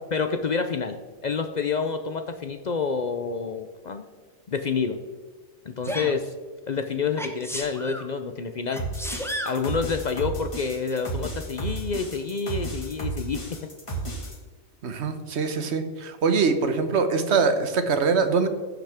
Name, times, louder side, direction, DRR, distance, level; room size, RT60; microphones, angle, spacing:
voice 1, 0.1-4.0 4.5-5.0 5.7-6.3 6.7-8.8 9.5-13.5, left 5 dB, 65° left, 7 dB, 0.4 m, -28 dB
Sneeze, 5.8-6.1 7.2-8.1 8.7-9.6 10.9-11.0, equal, ahead, 0.7 m, -33 dB
sound 1, 8.8-14.3, right 2 dB, 20° left, 1.8 m, -33 dB
voice 2, 14.8-18.5, right 5 dB, 55° right, 8 dB, 1.2 m, -23 dB
15.5 x 5.9 x 3.5 m, 1.5 s
omnidirectional pair, 1.4 m